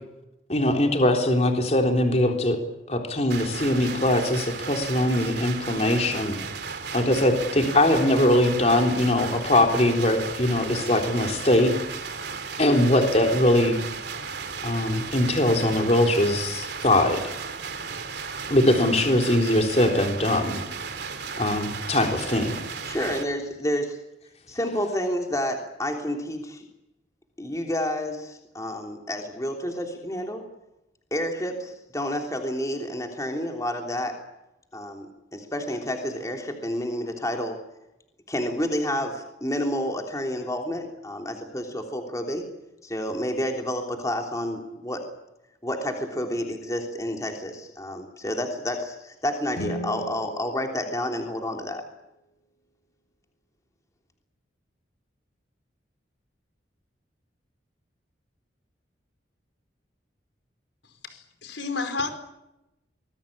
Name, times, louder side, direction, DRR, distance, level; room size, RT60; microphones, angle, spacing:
voice 1, 0.5-2.6 2.9-6.4 6.9-11.7 12.6-13.8 14.6-17.3 18.5-20.6 21.3-22.6, left 1 dB, 35° left, 3 dB, 3.8 m, -21 dB
sound 1, 3.3-23.2, right 5 dB, 60° right, 3.1 m, -35 dB
voice 2, 22.8-24.1 24.5-26.7 27.4-30.5 31.1-34.2 34.7-35.1 35.3-37.7 38.3-42.5 42.8-45.1 45.6-51.8, left 1 dB, 15° left, 2 dB, 3.3 m, -29 dB
sound 2, 49.5-51.7, equal, 55° left, 2.7 m, -37 dB
voice 3, 61.0-62.1, left 3 dB, 75° left, 8 dB, 4.8 m, -31 dB
26.5 x 20.0 x 8.7 m, 0.90 s
head